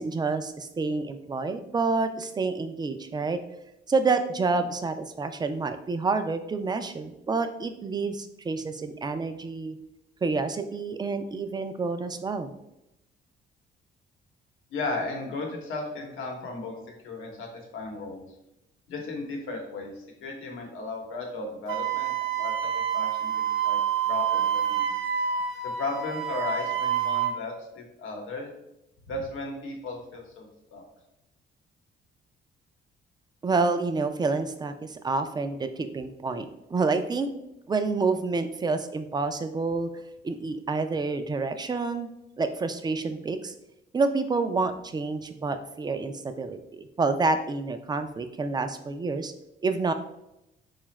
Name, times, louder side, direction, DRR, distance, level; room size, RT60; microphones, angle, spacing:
voice 1, 0.0-3.4 3.9-9.8 10.2-12.5 33.4-37.3 37.7-39.9 40.2-42.1 42.4-43.5 43.9-49.3 49.6-49.9, right 3 dB, 20° right, 9 dB, 0.3 m, -28 dB
voice 2, 14.7-16.8 17.0-18.3 18.9-23.8 24.1-24.9 25.6-28.5 29.1-30.8, left 3 dB, 85° left, 2 dB, 0.9 m, -35 dB
Wind instrument woodwind instrument, 21.7-27.3, right 8 dB, 75° right, 0.5 m, -27 dB
4.0 x 2.4 x 3.0 m, 0.86 s
cardioid pair, 90°, 20 cm